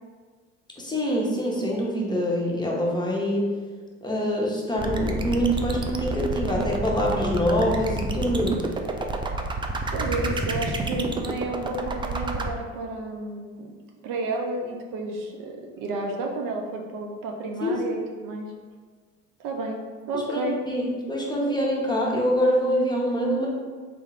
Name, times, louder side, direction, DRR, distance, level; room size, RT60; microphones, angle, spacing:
voice 1, 0.8-3.6 4.0-8.7 17.6-18.0 20.1-20.8 21.1-23.5, equal, 10° left, -3 dB, 1.0 m, -25 dB
sound 1, 4.8-12.5, right 2 dB, 15° right, 0.3 m, -29 dB
voice 2, 9.9-13.7 14.0-18.5 19.4-19.8 20.1-20.6, right 2 dB, 55° right, 2 dB, 0.7 m, -31 dB
3.5 x 3.4 x 3.3 m, 1.5 s
hypercardioid pair, 65°, 38 cm